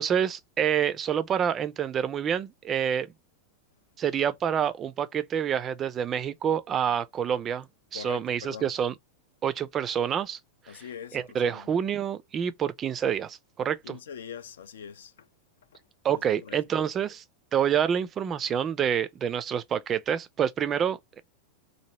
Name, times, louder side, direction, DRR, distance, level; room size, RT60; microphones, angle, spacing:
voice 1, 0.0-3.1 4.0-7.7 7.9-8.9 9.4-10.4 10.7-10.8 11.1-14.0 16.0-17.2 17.5-21.2, right 8 dB, 25° right, 0.4 m, -27 dB
voice 2, 7.9-8.7 10.7-11.7 13.8-15.3 15.7-15.8 16.1-16.8, left 8 dB, 60° left, 0.3 m, -43 dB
2.8 x 2.6 x 2.9 m
figure-of-eight pair, 90°, 0 cm